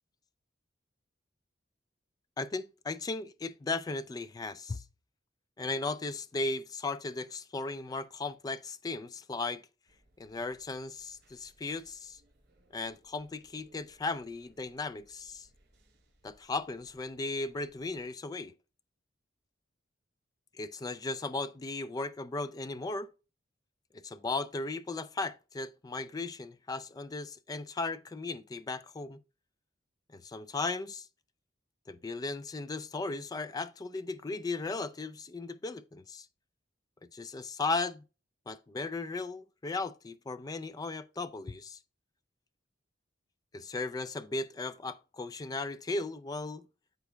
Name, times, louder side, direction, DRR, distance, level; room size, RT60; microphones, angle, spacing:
voice 1, 2.4-4.8 5.6-9.7 10.2-12.2 12.7-15.5 16.2-18.5 20.6-23.1 23.9-29.2 30.1-31.1 31.9-36.3 37.0-38.0 38.5-41.8 43.5-46.7, left 3 dB, 20° left, 0.3 m, -36 dB
sound 1, 9.8-18.1, right 1 dB, 65° right, 3.4 m, -67 dB
13.0 x 4.6 x 2.2 m
head